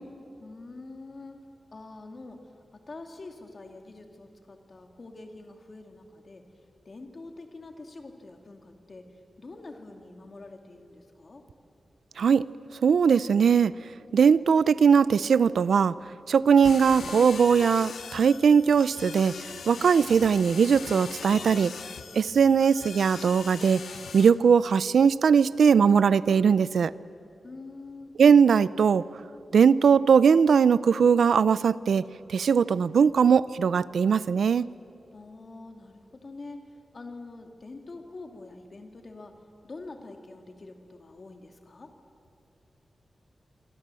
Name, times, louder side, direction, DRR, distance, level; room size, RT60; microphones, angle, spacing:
voice 1, 0.4-1.4 1.7-6.5 6.8-11.5 27.4-28.1 35.1-36.7 36.9-39.4 39.6-41.9, left 3 dB, 35° left, 4 dB, 2.3 m, -45 dB
voice 2, 12.8-13.7 14.1-15.9 16.3-19.3 19.7-21.7 22.1-23.8 24.1-26.9 28.2-29.0 29.5-32.0 32.3-34.7, right 6 dB, 80° right, 18 dB, 0.5 m, -20 dB
sound 1, 16.6-24.3, left 6 dB, 80° left, 1.2 m, -41 dB
26.5 x 25.0 x 7.7 m, 2.6 s
wide cardioid pair, 175°, 0 cm